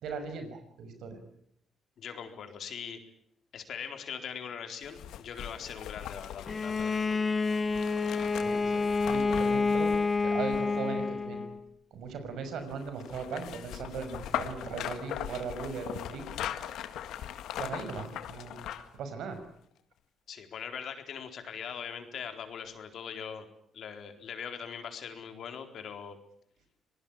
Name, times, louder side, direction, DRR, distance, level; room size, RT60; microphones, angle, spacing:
voice 1, 0.0-1.2 8.3-9.9 10.2-11.4 11.9-16.2 17.6-19.4, right 5 dB, 75° right, 8 dB, 5.8 m, -38 dB
voice 2, 2.0-3.0 3.5-7.3 20.3-23.5 23.7-26.2, left 7 dB, 65° left, 6 dB, 4.0 m, -41 dB
sound 1, 4.8-11.0 12.7-19.0 19.4-19.5, left 11 dB, 85° left, 1.9 m, -40 dB
Bowed string instrument, 6.5-11.6, left 4 dB, 30° left, 1.4 m, -28 dB
26.5 x 19.0 x 8.9 m, 0.70 s
cardioid pair, 90°, 0 cm